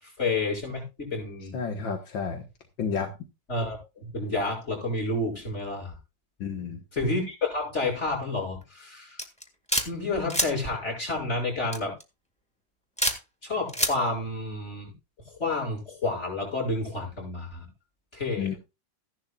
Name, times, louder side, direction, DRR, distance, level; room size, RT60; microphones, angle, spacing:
voice 1, 0.0-1.6 3.5-5.9 6.9-9.2 9.9-12.0 13.4-14.9 15.4-17.7 18.1-18.6, left 2 dB, 35° left, 7.5 m, -30 dB
voice 2, 1.5-2.4 2.8-3.1 6.4-6.8 18.4-18.6, left 6 dB, 85° left, 2.2 m, -30 dB
sound 1, 9.2-9.9 10.3-10.5 11.7-12.0 13.0-13.2 13.7-13.9, equal, 5° left, 1.8 m, -25 dB
15.5 x 11.5 x 2.4 m
omnidirectional pair, 2.0 m